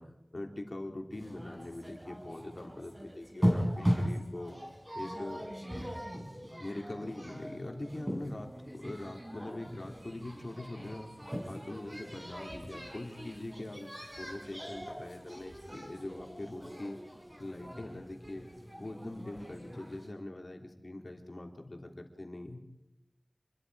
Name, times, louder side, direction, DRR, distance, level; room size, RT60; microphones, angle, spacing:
voice 1, 0.0-4.6 4.9-5.4 6.6-11.1 11.4-17.0 17.4-18.5 18.8-22.6, left 1 dB, 55° left, 3 dB, 3.2 m, -43 dB
sound 1, 1.1-20.1, equal, 25° right, 6.2 m, -39 dB
28.0 x 22.0 x 4.9 m, 0.93 s
wide cardioid pair, 60°, 0 cm